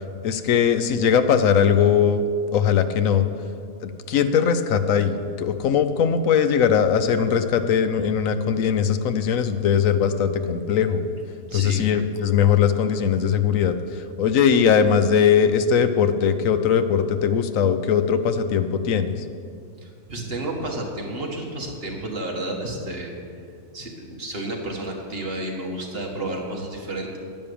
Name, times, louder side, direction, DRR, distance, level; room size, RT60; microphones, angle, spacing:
voice 1, 0.2-2.2 2.5-3.3 3.8-11.0 11.5-13.7 14.2-19.1, left 7 dB, 65° left, 10 dB, 1.1 m, -20 dB
voice 2, 11.5-11.8 19.8-23.2 23.7-27.2, right 1 dB, 40° right, 0 dB, 1.8 m, -31 dB
10.5 x 9.3 x 6.9 m, 2.3 s
omnidirectional pair, 1.6 m